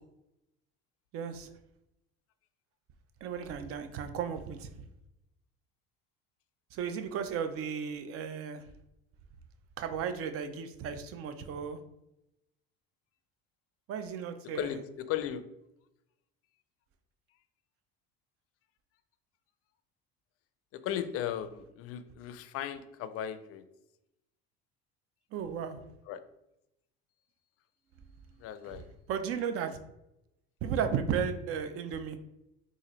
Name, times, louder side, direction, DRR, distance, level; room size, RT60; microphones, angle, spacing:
voice 1, 1.1-1.5 3.2-4.7 6.7-8.6 9.8-11.8 13.9-14.8 25.3-25.8 29.1-29.8 30.6-32.2, right 7 dB, 50° right, 8 dB, 0.5 m, -34 dB
voice 2, 14.5-15.4 20.7-23.6 26.1-26.2 28.4-28.8, left 10 dB, 50° left, 12 dB, 0.4 m, -36 dB
3.9 x 2.5 x 3.1 m, 0.87 s
supercardioid pair, 95°, 30 cm